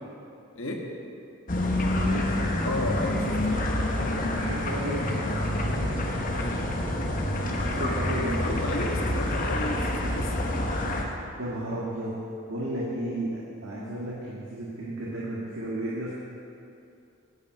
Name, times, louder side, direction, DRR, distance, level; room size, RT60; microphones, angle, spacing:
voice 1, 0.5-0.9 2.6-3.4 7.7-10.3, left 2 dB, 85° left, 1 dB, 1.5 m, -33 dB
sound 1, 1.5-11.0, left 1 dB, 40° left, 1.1 m, -27 dB
voice 2, 1.9-2.5 4.3-6.7 7.3-8.6 11.4-12.1 12.5-16.1, right 1 dB, 85° right, -6 dB, 1.7 m, -34 dB
9.6 x 6.4 x 8.6 m, 2.6 s
head